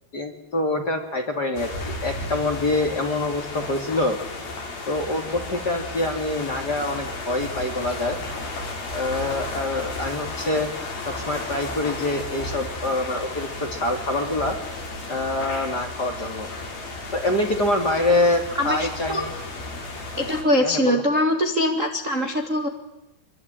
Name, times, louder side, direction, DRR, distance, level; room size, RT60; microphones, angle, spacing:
voice 1, 0.1-4.2 4.9-8.2 8.9-10.7 11.0-14.6 15.1-16.5 17.1-19.3 20.6-21.0, left 2 dB, 30° left, 4 dB, 2.5 m, -25 dB
sound 1, 1.5-20.4, left 2 dB, 65° left, 6.6 m, -34 dB
voice 2, 18.6-19.3 20.2-22.7, left 1 dB, 30° right, 3 dB, 1.6 m, -22 dB
26.0 x 23.5 x 9.0 m, 0.93 s
omnidirectional pair, 4.5 m